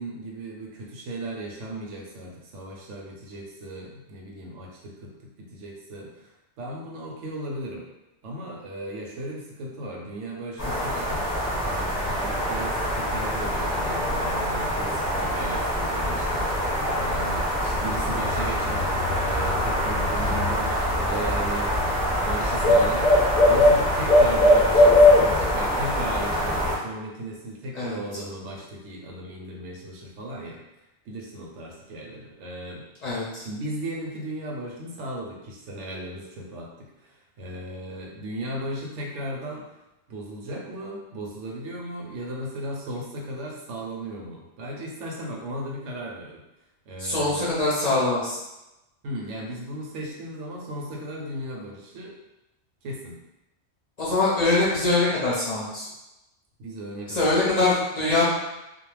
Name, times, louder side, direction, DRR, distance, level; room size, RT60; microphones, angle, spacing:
voice 1, 0.0-7.8 8.2-11.2 11.6-21.9 22.2-30.6 31.1-32.9 33.4-39.7 40.1-46.4 46.9-47.5 49.0-52.2 52.8-53.1 56.6-57.3, right 1 dB, 80° right, -2 dB, 0.9 m, -36 dB
sound 1, 10.6-26.7, left 1 dB, 15° left, 0.8 m, -22 dB
sound 2, 17.8-25.5, left 1 dB, 15° right, 0.5 m, -38 dB
voice 2, 33.0-33.4 47.0-48.4 54.0-55.9 57.1-58.2, left 2 dB, 45° left, -8 dB, 0.6 m, -23 dB
2.3 x 2.0 x 3.1 m, 0.95 s
omnidirectional pair, 1.2 m